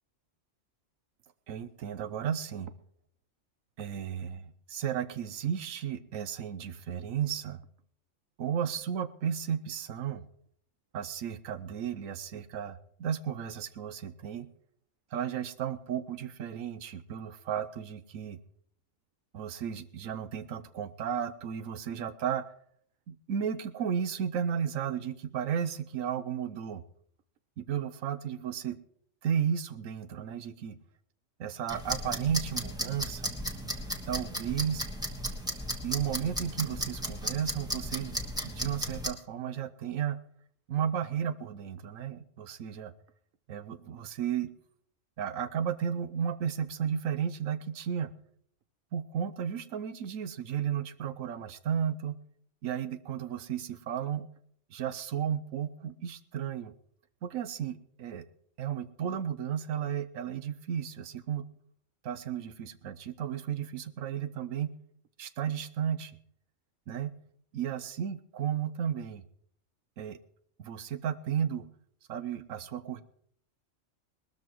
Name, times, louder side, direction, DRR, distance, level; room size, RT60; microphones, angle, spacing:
voice 1, 1.5-2.7 3.8-7.6 8.4-10.2 10.9-14.5 15.1-18.4 19.3-22.4 23.1-26.8 27.6-28.8 29.2-30.8 31.4-33.3 34.1-34.9 35.8-38.2 38.4-40.2 40.7-42.9 43.5-44.6 45.2-48.1 48.9-52.2 52.6-54.3 54.7-56.7 57.2-58.3 58.6-61.4 62.0-64.7 65.2-66.1 66.9-67.1 67.5-69.2 70.0-70.2 70.6-71.7 72.1-73.0, right 8 dB, 90° right, 12 dB, 1.2 m, -34 dB
sound 1, 31.7-39.1, equal, 5° right, 1.2 m, -35 dB
20.0 x 13.0 x 3.1 m, 0.64 s
omnidirectional pair, 1.3 m